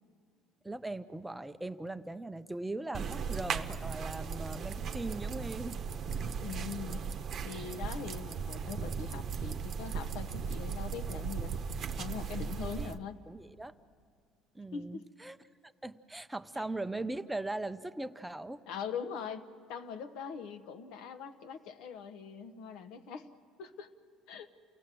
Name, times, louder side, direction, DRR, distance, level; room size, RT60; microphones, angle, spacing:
voice 1, 0.6-5.8 12.8-12.9 13.3-13.7 14.5-15.4 15.6-18.6, right 2 dB, 5° right, 10 dB, 0.5 m, -39 dB
sound 1, 2.9-13.0, right 6 dB, 45° right, 0.8 m, -37 dB
voice 2, 6.4-7.1 7.4-11.6 12.0-13.2 14.7-15.1 16.6-16.7 18.7-23.3 23.6-23.9 24.3-24.5, left 6 dB, 75° left, 10 dB, 1.0 m, -42 dB
28.5 x 17.5 x 7.6 m, 2.2 s
cardioid pair, 130°, 0 cm